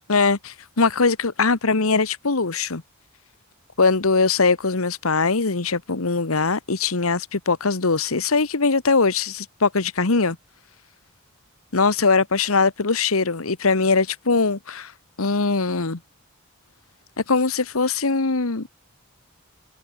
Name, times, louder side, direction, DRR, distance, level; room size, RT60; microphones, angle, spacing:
voice 1, 0.1-2.8 3.8-10.4 11.7-14.9 15.2-16.0 17.3-18.7, left 4 dB, 85° left, 1.4 m, -21 dB
open air
head